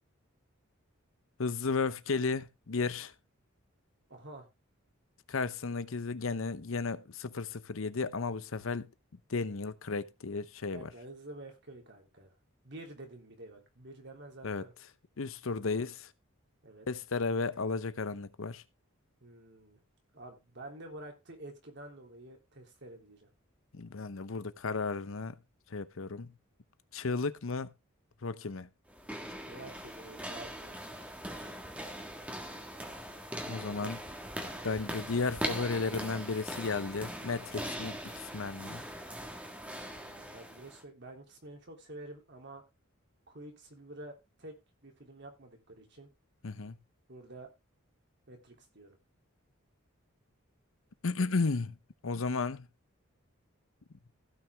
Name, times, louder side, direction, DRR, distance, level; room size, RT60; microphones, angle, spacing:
voice 1, 1.4-3.1 5.3-8.9 9.3-10.9 14.4-14.6 15.2-16.1 16.9-18.6 23.7-25.3 25.7-26.3 26.9-27.7 28.2-28.7 33.5-34.0 34.6-38.8 46.4-46.8 51.0-51.8 52.0-52.7, left 4 dB, 70° left, 0.7 m, -34 dB
voice 2, 4.1-4.5 10.7-12.3 12.6-14.7 15.7-15.9 16.6-16.9 19.2-19.8 20.1-23.3 29.5-30.8 39.9-42.6 43.3-44.6 44.8-46.1 47.1-47.5 48.3-49.0, right 2 dB, 55° right, 3.3 m, -49 dB
sound 1, 28.9-40.8, equal, 5° right, 1.6 m, -41 dB
16.0 x 6.1 x 3.4 m
head